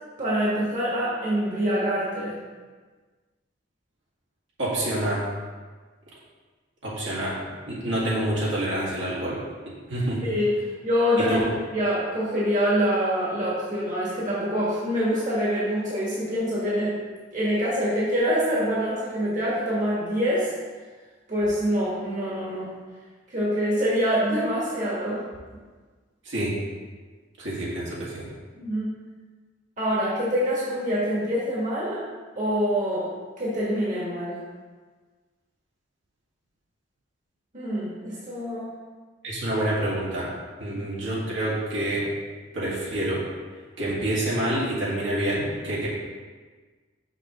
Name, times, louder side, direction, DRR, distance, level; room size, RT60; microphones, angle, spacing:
voice 1, 0.2-2.3 10.2-10.5 10.8-11.4 11.7-17.0 17.3-20.5 21.3-22.7 23.3-25.2 28.6-28.9 29.8-32.0 32.3-33.1 33.4-34.4 37.5-38.7, equal, 45° right, -7 dB, 1.5 m, -25 dB
voice 2, 4.6-5.3 6.8-7.4 7.7-9.4 9.7-10.2 11.2-11.4 26.2-26.6 27.4-28.3 39.2-40.3 40.6-42.1 42.5-43.3 43.8-45.9, right 1 dB, 75° right, -7 dB, 2.0 m, -27 dB
5.9 x 5.9 x 3.0 m, 1.4 s
head